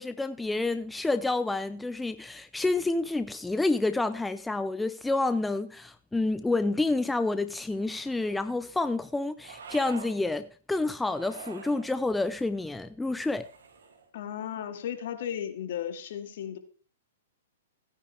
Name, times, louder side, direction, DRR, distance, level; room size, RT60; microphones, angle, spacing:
voice 1, 0.0-13.5, left 2 dB, 5° left, 0.5 m, -29 dB
sound 1, 7.7-8.5 9.4-10.2 11.0-11.9 13.2-14.1, right 5 dB, 75° right, 2.5 m, -46 dB
voice 2, 14.1-16.6, left 9 dB, 60° left, 2.0 m, -35 dB
16.5 x 9.7 x 3.4 m
hypercardioid pair, 130°, 0 cm